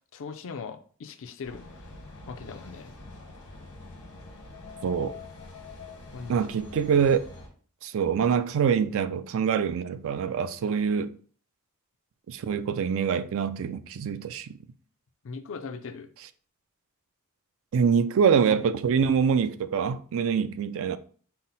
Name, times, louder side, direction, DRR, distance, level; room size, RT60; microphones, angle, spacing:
voice 1, 0.1-1.6 2.3-2.9 6.1-6.4 15.2-16.1, left 5 dB, 60° left, 0.5 m, -39 dB
sound 1, 1.4-7.5, left 3 dB, 85° left, 1.4 m, -45 dB
voice 2, 4.8-5.1 6.3-7.2 7.8-11.1 12.3-14.6 17.7-21.0, right 6 dB, 65° right, 0.3 m, -25 dB
5.6 x 2.0 x 4.0 m
head